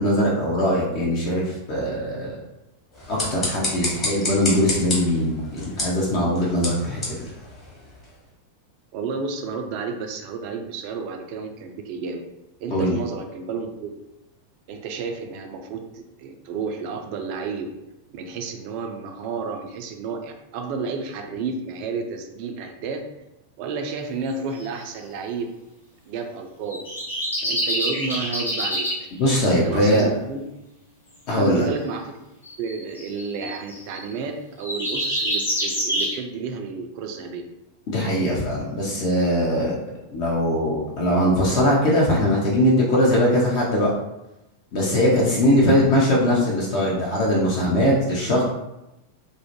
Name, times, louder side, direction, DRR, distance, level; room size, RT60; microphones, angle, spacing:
voice 1, 0.0-2.4 3.1-7.0 12.7-13.0 29.2-30.1 31.3-31.6 37.9-39.8 40.1-43.9 44.7-48.4, equal, 45° left, -5 dB, 0.5 m, -21 dB
sound 1, 2.9-8.2, left 2 dB, 25° left, 0.9 m, -30 dB
voice 2, 8.9-12.2 12.6-13.9 14.7-17.7 18.1-23.0 23.6-25.5 26.1-26.8 27.4-28.8 29.6-30.4 31.3-32.2 32.6-37.4, right 4 dB, 45° right, 5 dB, 0.3 m, -31 dB
sound 2, 24.6-24.9 26.7-29.0 31.4-31.6 32.4-34.1 34.6-36.2, equal, 80° left, 1.1 m, -26 dB
2.3 x 2.0 x 2.8 m, 0.92 s
figure-of-eight pair, 90°, 0 cm